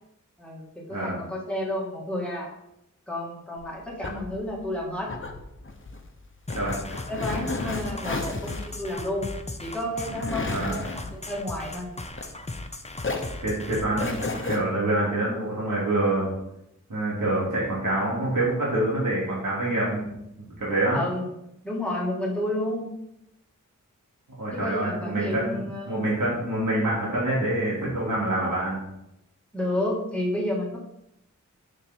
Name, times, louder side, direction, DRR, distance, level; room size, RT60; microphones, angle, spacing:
voice 1, 0.4-2.5 3.1-5.1 7.1-9.3 9.6-11.9 20.9-21.2 21.6-22.9 24.5-26.0 29.5-30.8, left 1 dB, 5° left, -3 dB, 2.2 m, -31 dB
sound 1, 3.6-12.7 13.0-14.6, left 3 dB, 40° left, 1.2 m, -34 dB
sound 2, 6.5-14.5, left 2 dB, 20° left, 0.7 m, -37 dB
voice 2, 13.4-16.3 16.9-20.0 20.6-21.0 24.4-28.8, right 1 dB, 70° right, -7 dB, 3.3 m, -26 dB
7.2 x 7.1 x 4.6 m, 0.83 s
wide cardioid pair, 90°, 33 cm